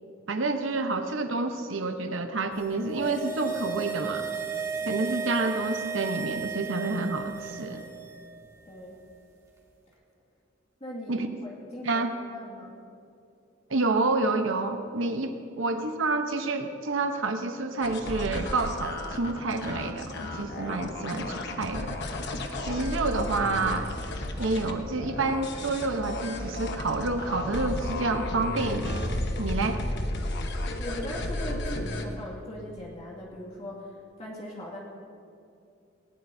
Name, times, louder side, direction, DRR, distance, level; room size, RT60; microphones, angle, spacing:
voice 1, 0.3-4.3 4.9-7.8 11.1-11.4 11.8-12.1 13.7-22.0 22.6-23.9 24.4-29.0 29.4-29.8, right 3 dB, 75° right, 6 dB, 0.9 m, -29 dB
sound 1, 2.6-8.1 8.4-8.5, right 5 dB, 15° right, 2.5 m, -34 dB
voice 2, 8.6-9.0 10.8-12.8 22.7-22.9 30.8-34.8, equal, 35° left, -4 dB, 2.2 m, -40 dB
sound 2, 17.8-32.0, left 1 dB, 60° left, 1.2 m, -33 dB
19.5 x 18.5 x 2.7 m, 2.6 s
head